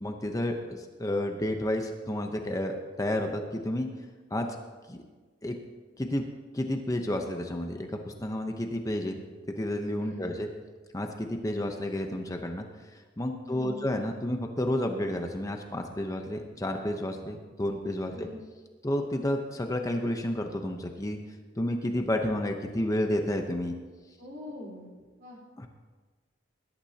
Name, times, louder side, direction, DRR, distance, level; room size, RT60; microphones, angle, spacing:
voice 1, 0.0-3.9 4.3-4.6 4.9-5.0 5.4-5.6 6.0-6.2 6.5-9.2 9.6-10.5 10.9-12.6 12.9-18.3 18.8-21.2 21.6-23.7 25.6-25.7, left 1 dB, 20° left, 4 dB, 0.8 m, -31 dB
voice 2, 10.0-10.3 13.4-13.8 18.1-18.4 24.2-24.9 25.2-25.4, left 1 dB, 55° right, -2 dB, 4.1 m, -43 dB
20.5 x 12.0 x 2.9 m, 1.4 s
head